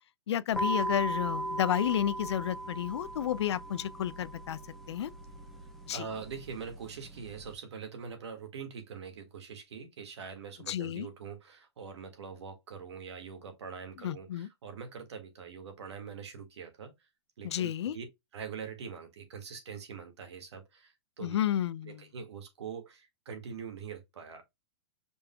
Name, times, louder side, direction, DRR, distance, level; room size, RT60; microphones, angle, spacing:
voice 1, 0.3-4.6 4.9-5.1 5.9-6.0 10.7-11.1 14.0-14.5 17.4-18.0 21.2-22.0, left 11 dB, 85° left, 0.4 m, -31 dB
sound 1, 0.5-7.5, right 2 dB, ahead, 0.9 m, -38 dB
voice 2, 5.9-16.9 17.4-18.0 18.3-21.4 21.8-24.4, right 6 dB, 85° right, 1.9 m, -43 dB
5.2 x 3.4 x 2.3 m
hypercardioid pair, 150°, 14 cm